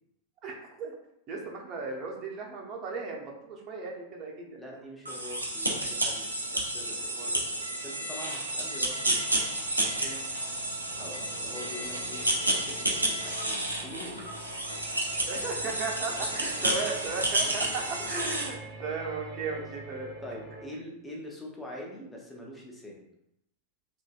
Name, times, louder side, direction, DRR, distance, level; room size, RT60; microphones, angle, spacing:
voice 1, 0.4-0.9 1.3-4.6 7.1-7.3 10.0-10.2 15.3-20.1, right 4 dB, 35° right, 0 dB, 0.6 m, -36 dB
voice 2, 4.6-9.3 10.9-14.3 16.3-16.7 19.6-19.7 20.2-23.0, left 1 dB, 10° left, -2 dB, 0.7 m, -44 dB
sound 1, 5.1-18.5, right 1 dB, 85° right, 0.5 m, -31 dB
sound 2, 8.8-20.7, right 1 dB, 40° left, 1.0 m, -46 dB
3.1 x 2.7 x 2.2 m, 0.80 s
figure-of-eight pair, 90°, 0 cm